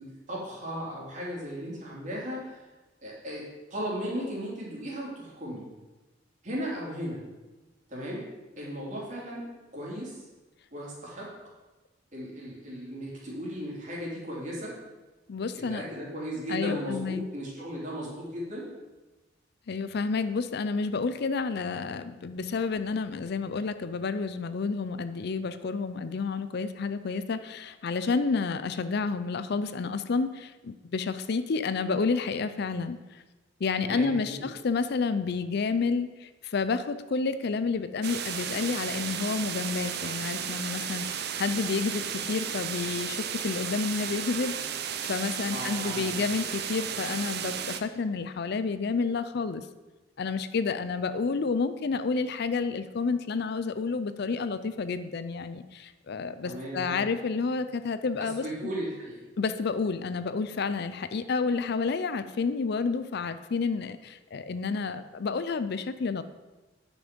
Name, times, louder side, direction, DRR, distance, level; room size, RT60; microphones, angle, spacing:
voice 1, 0.0-2.6 3.0-5.7 6.4-7.2 7.9-8.3 8.6-9.5 9.7-10.2 10.7-11.3 12.1-14.8 15.5-18.7 33.8-34.5 45.5-46.1 56.4-57.1 58.2-59.2, equal, 40° right, -5 dB, 3.2 m, -36 dB
voice 2, 15.3-15.8 16.5-17.2 19.7-33.0 33.6-44.6 45.0-49.6 50.2-58.4 59.4-66.2, left 4 dB, 60° left, 12 dB, 0.5 m, -30 dB
sound 1, 38.0-47.8, right 8 dB, 60° right, 0.6 m, -34 dB
9.6 x 6.1 x 5.3 m, 1.1 s
head